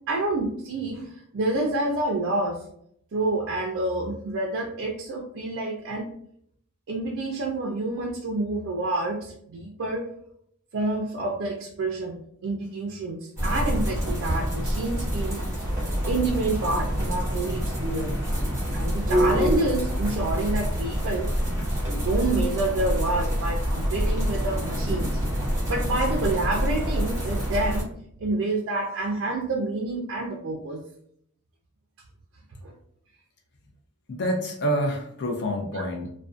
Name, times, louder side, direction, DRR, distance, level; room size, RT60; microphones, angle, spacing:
voice 1, 0.1-2.6 3.1-6.1 6.9-10.1 10.7-15.4 16.1-18.2 18.7-21.3 21.9-25.1 25.7-27.9 28.2-30.8 32.6-32.7 35.7-35.8, right 2 dB, 55° right, 1 dB, 0.4 m, -28 dB
sound 1, 13.4-27.8, equal, 15° right, 0.9 m, -26 dB
voice 2, 34.1-36.1, equal, 50° left, 1 dB, 0.5 m, -27 dB
2.4 x 2.2 x 2.4 m, 0.68 s
head